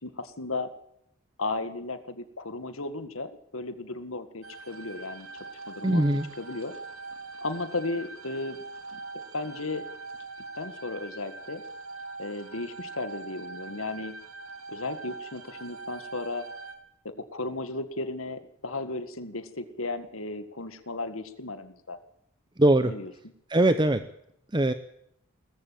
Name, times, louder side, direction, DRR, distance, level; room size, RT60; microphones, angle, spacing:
voice 1, 0.0-0.7 1.4-5.3 5.7-6.0 6.4-6.7 7.4-8.6 8.9-9.0 9.3-9.9 10.5-11.6 12.2-14.2 14.7-16.5 17.0-22.0 22.8-23.3, left 2 dB, 90° left, 11 dB, 2.0 m, -35 dB
sound 1, 4.4-16.7, right 3 dB, 90° right, 3.4 m, -42 dB
voice 2, 5.8-6.2 22.6-22.9 23.5-24.0 24.5-24.7, right 1 dB, 20° right, 11 dB, 0.8 m, -21 dB
19.5 x 15.0 x 8.8 m, 0.74 s
head